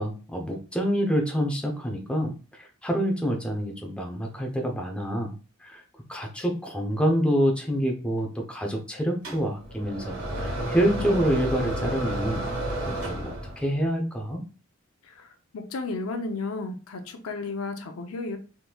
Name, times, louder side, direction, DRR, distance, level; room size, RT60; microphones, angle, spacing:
voice 1, 0.0-5.3 5.6-5.8 6.1-12.5 12.8-14.4, equal, 5° left, 1 dB, 0.6 m, -27 dB
sound 1, 9.2-13.7, right 1 dB, 70° right, 1.6 m, -31 dB
voice 2, 15.0-18.4, left 3 dB, 85° left, 6 dB, 0.5 m, -33 dB
3.5 x 3.0 x 2.2 m, 0.34 s
head